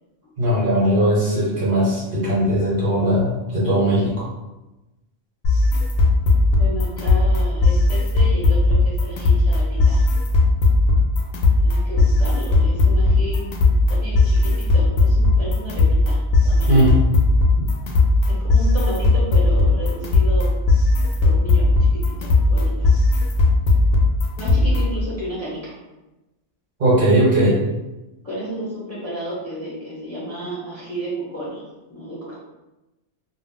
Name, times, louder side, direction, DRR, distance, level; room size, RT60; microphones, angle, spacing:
voice 1, 0.4-4.2 16.7-16.9 17.6-17.7 26.8-27.5, right 1 dB, 50° right, -7 dB, 1.0 m, -18 dB
sound 1, 5.4-25.0, left 2 dB, 65° left, 0.7 m, -17 dB
voice 2, 6.5-10.1 11.6-16.2 16.5-16.9 18.2-20.5 21.2-21.7 22.2-22.9 24.4-25.8 28.2-31.6 31.9-32.4, equal, 15° left, -8 dB, 0.7 m, -32 dB
2.3 x 2.0 x 3.5 m, 1.0 s
omnidirectional pair, 1.2 m